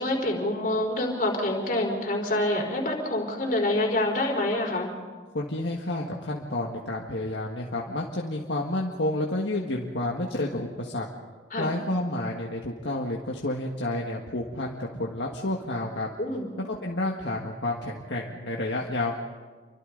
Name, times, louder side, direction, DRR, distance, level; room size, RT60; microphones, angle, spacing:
voice 1, 0.0-4.9 11.5-11.7 16.2-16.5, left 1 dB, 45° left, 1 dB, 4.4 m, -26 dB
voice 2, 5.3-11.1 11.6-16.1 16.7-19.2, left 1 dB, 70° left, -2 dB, 1.7 m, -30 dB
29.5 x 24.5 x 4.0 m, 1.4 s
head